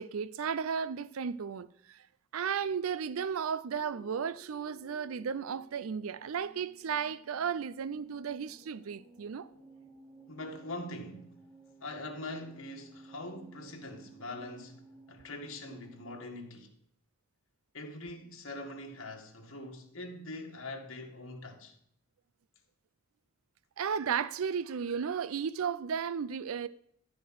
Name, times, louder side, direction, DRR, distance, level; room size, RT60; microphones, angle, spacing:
voice 1, 0.0-2.1 2.3-9.5 23.8-26.7, right 7 dB, 75° right, 0.4 m, -34 dB
sound 1, 3.7-16.2, right 2 dB, 5° left, 4.1 m, -57 dB
voice 2, 10.3-11.5 11.8-16.7 17.7-21.8, left 2 dB, 65° left, 1.9 m, -43 dB
15.0 x 5.1 x 6.3 m
head